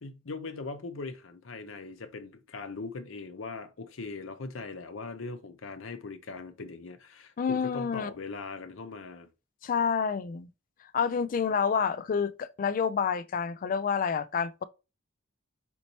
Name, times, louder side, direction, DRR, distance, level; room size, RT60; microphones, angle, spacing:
voice 1, 0.0-9.3, left 3 dB, 75° left, 0.7 m, -40 dB
voice 2, 7.4-8.1 9.6-10.5 10.9-14.6, left 6 dB, 45° left, 0.3 m, -28 dB
4.4 x 4.1 x 2.9 m
head